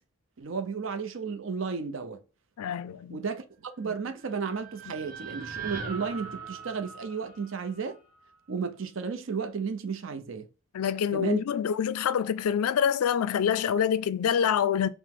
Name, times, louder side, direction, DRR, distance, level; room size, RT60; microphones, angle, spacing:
voice 1, 0.4-2.2 3.1-8.0 8.5-10.5 11.1-11.4, right 5 dB, 60° right, 0.5 m, -33 dB
voice 2, 2.6-3.2 10.7-14.9, left 8 dB, 90° left, 0.3 m, -26 dB
sound 1, 4.0-8.2, right 5 dB, 40° right, 0.8 m, -41 dB
4.8 x 2.1 x 3.6 m
head